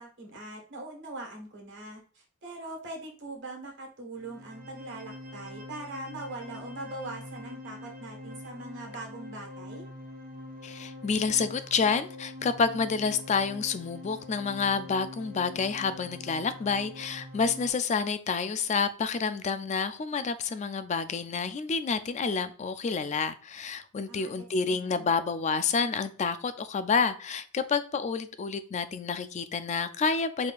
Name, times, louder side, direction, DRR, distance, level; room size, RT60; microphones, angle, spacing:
voice 1, 0.0-9.8 24.1-25.1, right 2 dB, 55° right, 0 dB, 1.4 m, -42 dB
sound 1, 4.1-17.7, left 1 dB, 40° right, 0.6 m, -44 dB
voice 2, 10.6-30.5, left 5 dB, 30° left, 12 dB, 0.3 m, -29 dB
4.7 x 4.1 x 2.4 m, 0.41 s
head